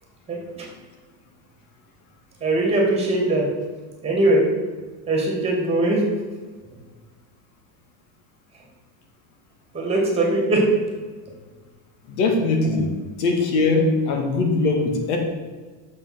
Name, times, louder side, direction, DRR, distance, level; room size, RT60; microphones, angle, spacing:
voice 1, 0.3-0.6 2.4-3.4 4.0-4.4 5.1-6.0 9.7-10.7, right 1 dB, 15° right, -1 dB, 2.4 m, -20 dB
voice 2, 12.1-12.9 13.2-15.2, left 3 dB, 85° left, 3 dB, 2.1 m, -21 dB
6.9 x 5.6 x 6.1 m, 1.4 s
cardioid pair, 165°, 44 cm